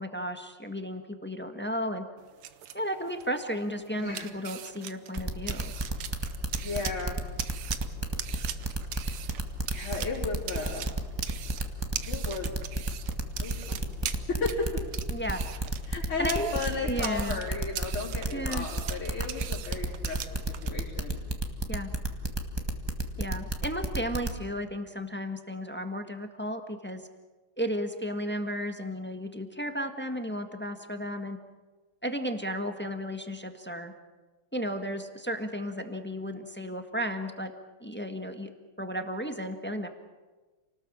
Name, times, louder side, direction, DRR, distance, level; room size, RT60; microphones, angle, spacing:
voice 1, 0.0-2.1 2.7-5.7 15.1-15.4 16.2-16.5 16.8-17.4 18.3-18.7 21.7-21.9 23.2-27.0 27.6-31.4 32.0-33.9 34.5-37.5 37.8-38.5 38.8-39.9, equal, 5° left, 6 dB, 1.1 m, -34 dB
sound 1, 2.2-20.7, right 10 dB, 85° right, 2.0 m, -41 dB
sound 2, 5.2-24.4, right 2 dB, 15° right, 1.4 m, -30 dB
voice 2, 6.5-7.2 9.6-10.9 12.0-12.5 13.4-14.0 14.3-14.7 15.9-21.2, left 3 dB, 75° left, -8 dB, 4.7 m, -34 dB
28.5 x 19.0 x 7.4 m, 1.3 s
omnidirectional pair, 2.4 m